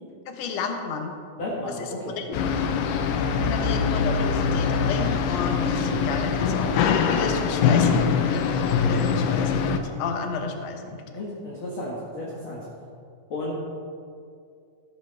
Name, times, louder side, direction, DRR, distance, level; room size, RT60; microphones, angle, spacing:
voice 1, 0.3-1.1 1.8-1.9 2.2-2.4 3.4-11.0, left 4 dB, 65° left, 4 dB, 1.9 m, -32 dB
voice 2, 1.4-2.2 11.1-12.7 13.3-13.6, left 1 dB, 45° left, -5 dB, 2.0 m, -33 dB
sound 1, 2.3-9.8, left 6 dB, 80° left, 2.3 m, -23 dB
14.0 x 12.5 x 3.4 m, 2.4 s
omnidirectional pair, 3.9 m